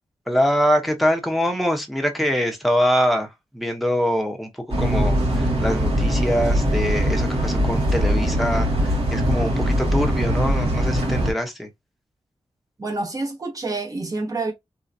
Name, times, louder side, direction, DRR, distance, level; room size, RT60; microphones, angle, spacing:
voice 1, 0.3-3.3 3.5-4.5 4.8-11.7, equal, ahead, 0.9 m, -23 dB
sound 1, 4.7-11.3, equal, 80° right, 1.8 m, -21 dB
voice 2, 12.8-14.5, right 3 dB, 35° right, 1.2 m, -28 dB
3.3 x 2.8 x 2.6 m
wide cardioid pair, 140°, 10 cm